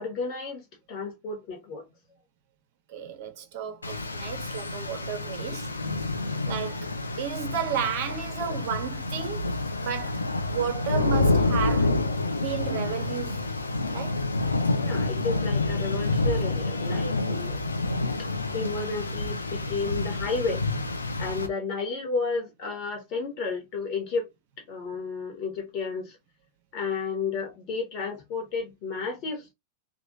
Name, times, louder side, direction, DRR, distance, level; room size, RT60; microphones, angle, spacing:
voice 1, 0.0-1.9 14.8-17.7 18.2-20.6 21.2-24.3 24.7-26.2 26.7-29.5, left 4 dB, 40° left, 1.5 m, -32 dB
voice 2, 2.9-5.7 6.4-10.3 10.5-12.0 12.4-13.5 13.9-14.2, right 8 dB, 45° right, 0.5 m, -33 dB
Rain, 3.8-21.5, left 2 dB, 75° left, 0.7 m, -28 dB
3.0 x 2.5 x 2.6 m
figure-of-eight pair, 90°, 0 cm